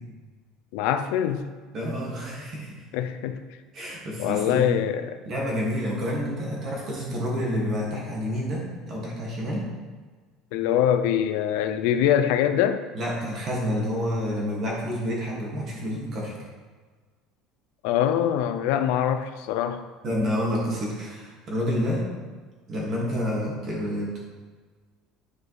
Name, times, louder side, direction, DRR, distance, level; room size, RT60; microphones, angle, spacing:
voice 1, 0.7-1.5 2.9-3.4 4.2-5.2 10.5-12.8 17.8-19.8, left 10 dB, 70° left, 9 dB, 0.4 m, -23 dB
voice 2, 1.7-2.9 3.7-4.7 5.2-9.7 12.9-16.4 20.0-22.1 22.7-24.2, equal, 30° right, -3 dB, 1.9 m, -29 dB
9.6 x 4.9 x 3.2 m, 1.4 s
cardioid pair, 175°, 0 cm